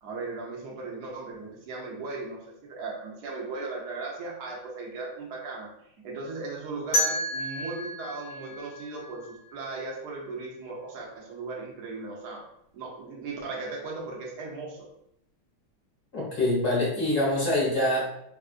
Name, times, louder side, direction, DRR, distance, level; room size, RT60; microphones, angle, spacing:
voice 1, 0.0-12.4 12.7-14.9, right 3 dB, 60° right, -2 dB, 1.0 m, -37 dB
sound 1, 6.9-9.8, equal, 60° left, 1.3 m, -31 dB
voice 2, 16.1-18.1, left 1 dB, 35° left, -6 dB, 1.0 m, -25 dB
3.6 x 2.4 x 2.4 m, 0.75 s
omnidirectional pair, 2.4 m